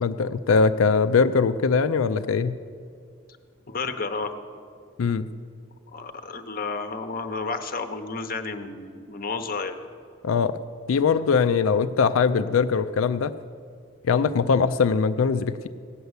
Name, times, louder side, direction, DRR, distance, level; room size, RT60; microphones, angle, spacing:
voice 1, 0.0-2.6 5.0-5.3 10.2-10.6 10.9-13.3 14.1-15.7, left 5 dB, 80° left, 12 dB, 0.4 m, -21 dB
voice 2, 3.7-4.3 5.1-5.2 5.9-9.8, left 4 dB, 45° left, 7 dB, 0.8 m, -31 dB
16.5 x 6.8 x 8.0 m, 2.2 s
head